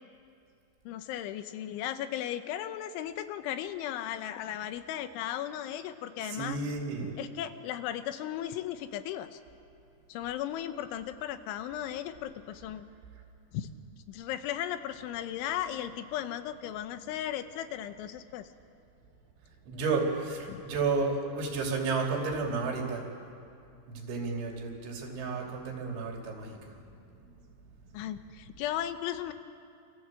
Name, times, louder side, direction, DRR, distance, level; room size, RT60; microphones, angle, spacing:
voice 1, 0.9-6.6 7.2-9.4 10.1-12.9 13.5-13.7 14.1-18.5 20.5-20.6 27.9-29.3, left 11 dB, 90° left, 10 dB, 3.5 m, -36 dB
voice 2, 6.3-7.1 19.7-23.0 24.0-26.6, right 4 dB, 80° right, 1 dB, 5.4 m, -32 dB
27.5 x 27.0 x 7.7 m, 2.5 s
omnidirectional pair, 5.3 m